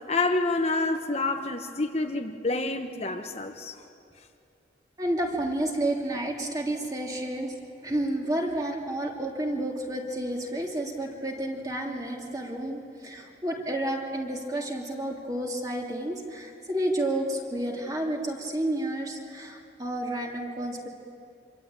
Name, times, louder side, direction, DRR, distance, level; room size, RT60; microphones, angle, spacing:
voice 1, 0.1-3.8, left 2 dB, 35° left, 4 dB, 1.1 m, -28 dB
voice 2, 5.0-7.6 7.8-20.9, right 1 dB, 20° right, 0 dB, 2.9 m, -30 dB
26.5 x 23.0 x 8.9 m, 2.5 s
head